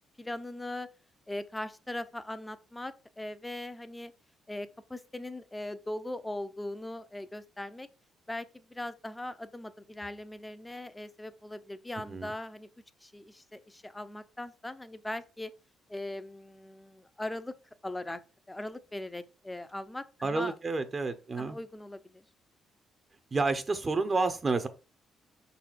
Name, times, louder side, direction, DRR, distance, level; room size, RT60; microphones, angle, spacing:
voice 1, 0.2-0.9 1.3-4.1 4.5-7.9 8.3-12.7 13.0-15.5 15.9-17.5 17.8-18.2 18.5-20.5 21.4-22.2, left 1 dB, 10° left, 0.7 m, -40 dB
voice 2, 20.2-21.6 23.3-24.7, right 3 dB, 30° right, 0.8 m, -30 dB
5.4 x 4.1 x 4.6 m
cardioid pair, 90°, 0 cm